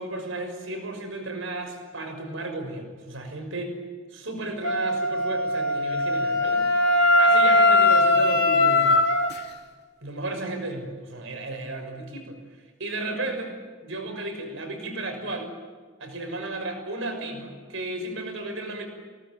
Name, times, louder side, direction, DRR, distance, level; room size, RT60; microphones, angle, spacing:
voice 1, 0.0-3.8 4.1-6.7 7.2-9.1 10.0-12.4 12.8-13.5 13.8-15.5 16.0-18.9, right 2 dB, 65° right, 5 dB, 6.1 m, -33 dB
Wind instrument woodwind instrument, 4.6-9.3, left 2 dB, 50° left, 3.0 m, -20 dB
28.5 x 19.0 x 9.1 m, 1.5 s
head